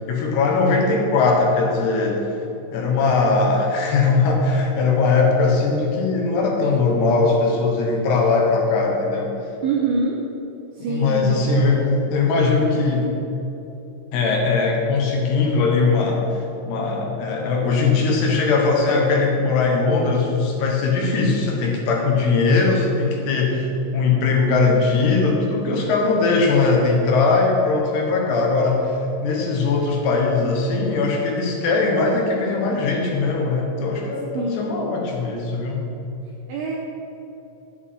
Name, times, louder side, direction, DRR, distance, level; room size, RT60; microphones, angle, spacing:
voice 1, 0.1-2.2 2.7-9.3 10.9-13.1 14.1-16.2 16.6-23.7 23.9-28.9 29.2-35.8, left 3 dB, 70° left, 0 dB, 2.8 m, -20 dB
voice 2, 9.6-10.2 10.7-11.4 34.3-34.9 36.5-36.8, right 3 dB, 90° right, -1 dB, 2.2 m, -24 dB
10.5 x 8.4 x 3.7 m, 2.9 s
omnidirectional pair, 5.5 m